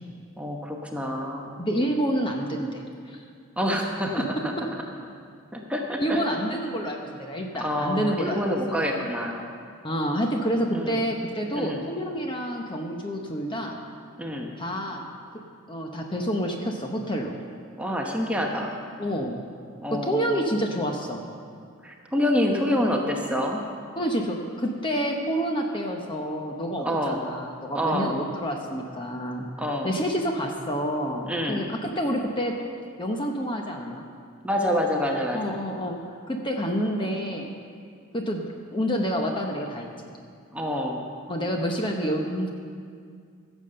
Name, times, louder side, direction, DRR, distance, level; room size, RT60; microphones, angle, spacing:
voice 1, 0.4-1.6 3.6-4.5 5.5-6.2 7.6-9.5 10.7-11.0 11.6-11.8 14.2-14.5 17.8-18.7 19.8-20.6 21.8-23.6 26.8-27.2 27.7-28.2 29.6-29.9 31.3-31.6 34.4-35.5 40.5-41.0, equal, 5° right, 0 dB, 1.0 m, -27 dB
voice 2, 1.6-3.2 6.0-8.8 9.8-13.8 14.6-15.1 15.7-17.4 19.0-19.4 20.0-21.2 24.0-29.5 29.8-32.5 33.0-34.0 35.3-36.0 36.3-37.5 38.1-38.4 38.7-39.9 41.3-42.5, equal, 20° left, 2 dB, 0.9 m, -28 dB
15.5 x 7.3 x 6.7 m, 2.2 s
head